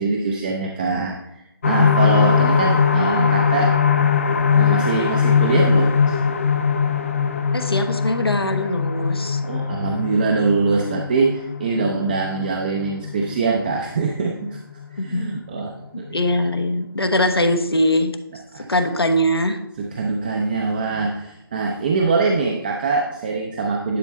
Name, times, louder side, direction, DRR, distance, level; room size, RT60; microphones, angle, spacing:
voice 1, 0.0-3.7 4.5-6.2 9.5-14.6 14.9-16.4 18.5-18.7 19.8-24.0, right 4 dB, 25° right, 2 dB, 0.5 m, -23 dB
sound 1, 1.6-15.1 15.6-15.7 16.1-16.2, left 6 dB, 35° left, 0.5 m, -21 dB
voice 2, 7.5-9.4 15.0-15.3 16.1-18.2 18.6-19.6, left 1 dB, 85° left, 6 dB, 1.1 m, -21 dB
10.5 x 5.3 x 3.1 m, 0.89 s
figure-of-eight pair, 155°, 13 cm